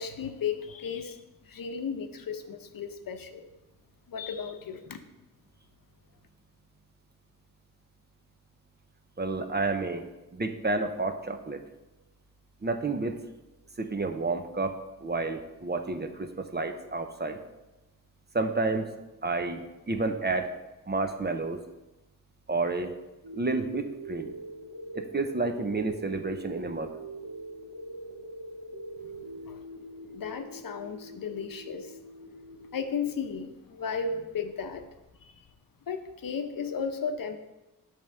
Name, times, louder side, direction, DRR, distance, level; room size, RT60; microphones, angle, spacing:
voice 1, 0.0-3.5 4.1-5.0 29.5-29.6 30.1-32.0 32.7-34.9 35.2-35.5 35.9-37.4, left 6 dB, 80° left, 7 dB, 0.8 m, -35 dB
voice 2, 9.2-10.1 10.3-11.6 12.6-13.2 13.8-17.4 18.3-18.9 19.2-19.6 19.9-20.5 20.9-21.6 22.5-22.9 23.3-24.3 24.9-26.9, right 3 dB, 30° right, 6 dB, 0.8 m, -30 dB
sound 1, 23.2-33.2, right 1 dB, 90° right, 1.1 m, -43 dB
8.5 x 3.6 x 6.7 m, 1.0 s
wide cardioid pair, 80°, 33 cm